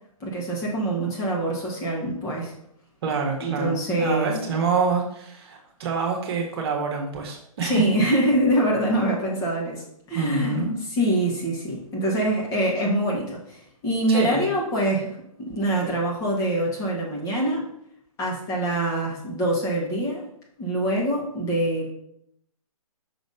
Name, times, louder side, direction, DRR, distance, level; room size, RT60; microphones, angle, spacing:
voice 1, 0.2-2.5 3.4-4.3 7.6-10.6 10.9-15.1 15.4-17.7 18.2-20.2 20.6-21.9, right 1 dB, 20° left, -3 dB, 2.0 m, -24 dB
voice 2, 3.0-7.8 10.1-10.7 14.1-14.5, right 4 dB, 40° right, 0 dB, 1.6 m, -26 dB
5.9 x 4.0 x 5.6 m, 0.73 s
figure-of-eight pair, 135°, 19 cm